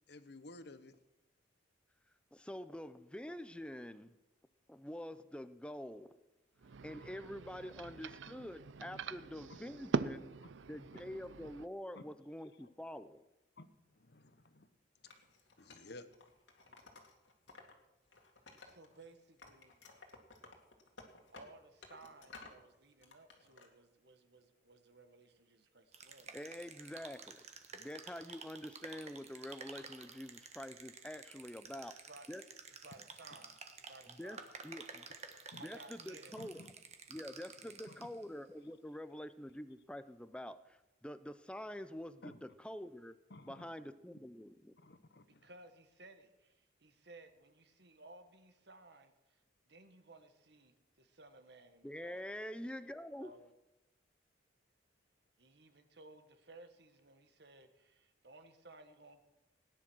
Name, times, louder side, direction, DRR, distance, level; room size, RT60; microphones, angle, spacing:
voice 1, 0.1-1.0 9.5-9.6 10.4-10.5 11.9-12.0 12.6-12.7 13.6-13.7 13.9-14.7 15.0-15.1 15.6-16.1 35.5-35.6 36.4-36.7 37.9-38.1 42.2-42.4 43.3-43.9 44.8-45.5, left 2 dB, 60° left, 12 dB, 1.0 m, -54 dB
voice 2, 2.3-4.1 4.7-6.1 6.8-10.3 10.7-13.2 26.3-27.4 27.7-32.0 32.3-32.4 34.2-34.4 34.6-35.1 35.6-36.6 37.1-40.8 41.0-43.2 43.4-44.7 51.8-53.3, left 1 dB, 5° left, 12 dB, 0.5 m, -46 dB
sound 1, 6.6-11.7, right 4 dB, 75° right, 0.5 m, -42 dB
Wood, 15.1-17.7 18.0-19.1 19.4-22.6 23.0-23.7, left 3 dB, 80° left, 2.2 m, -57 dB
voice 3, 18.6-19.8 21.3-26.4 32.1-35.2 35.6-36.4 45.3-49.4 49.7-52.3 53.2-53.5 55.4-59.2, right 2 dB, 60° right, 8 dB, 1.5 m, -59 dB
sound 2, 25.9-38.2, right 5 dB, 35° right, 1.3 m, -52 dB
17.0 x 10.0 x 6.3 m, 0.96 s
head